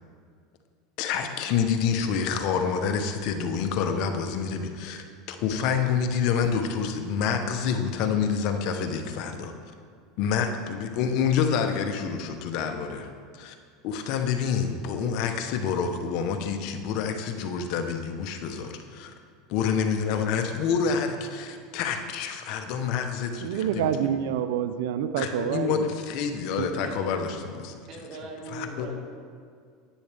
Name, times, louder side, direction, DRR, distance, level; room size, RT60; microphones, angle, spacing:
voice 1, 1.0-9.5 10.2-13.1 13.3-13.5 13.8-19.1 19.5-23.9 25.2-27.9 28.5-28.9, left 6 dB, 60° left, 6 dB, 0.9 m, -27 dB
voice 2, 23.4-25.9 26.6-26.7, right 9 dB, 80° right, 11 dB, 0.5 m, -27 dB
voice 3, 27.9-29.0, right 3 dB, 55° right, 1 dB, 1.5 m, -39 dB
10.0 x 8.5 x 3.5 m, 2.1 s
supercardioid pair, 115°, 0 cm